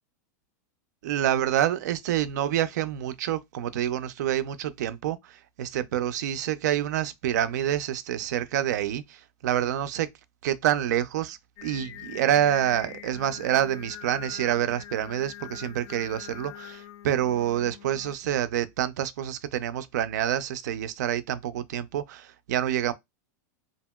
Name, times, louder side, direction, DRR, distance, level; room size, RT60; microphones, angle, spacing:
voice 1, 1.0-10.1 10.4-22.9, right 11 dB, 80° right, 0.4 m, -27 dB
Singing, 11.6-18.2, left 10 dB, 55° left, 0.4 m, -43 dB
2.8 x 2.6 x 2.2 m
supercardioid pair, 145°, 9 cm